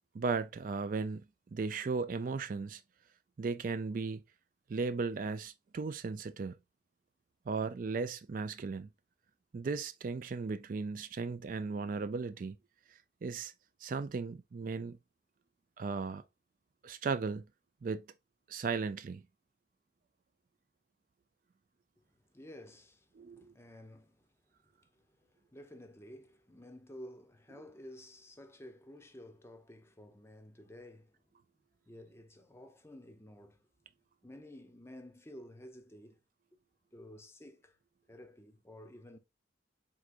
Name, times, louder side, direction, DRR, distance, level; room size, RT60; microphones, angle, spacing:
voice 1, 0.1-1.2 1.5-2.8 3.4-4.2 4.7-6.5 7.5-8.9 9.5-12.6 13.2-13.5 13.8-15.0 15.8-16.2 16.8-17.4 17.8-18.0 18.5-19.2 23.2-23.4, right 4 dB, 45° right, 0.3 m, -36 dB
voice 2, 22.0-31.3 31.9-33.7 34.2-36.2 36.5-36.6 36.9-37.8 38.1-39.2, left 1 dB, 15° left, 0.6 m, -53 dB
4.7 x 3.8 x 2.5 m
head